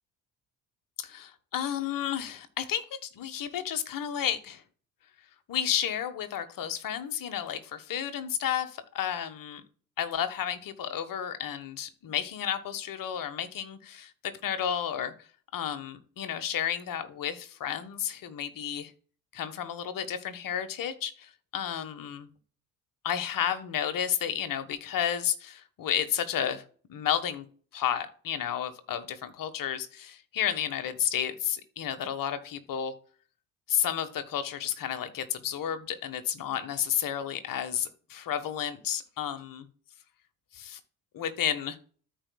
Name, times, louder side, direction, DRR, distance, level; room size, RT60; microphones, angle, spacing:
voice 1, 1.0-4.6 5.5-9.6 10.0-15.1 15.5-18.9 19.3-22.3 23.0-26.6 26.9-27.4 27.7-32.9 33.7-39.7 40.5-40.8 41.1-41.8, left 9 dB, 55° left, 8 dB, 1.4 m, -32 dB
14.0 x 4.7 x 2.3 m, 0.43 s
hypercardioid pair, 55°, 39 cm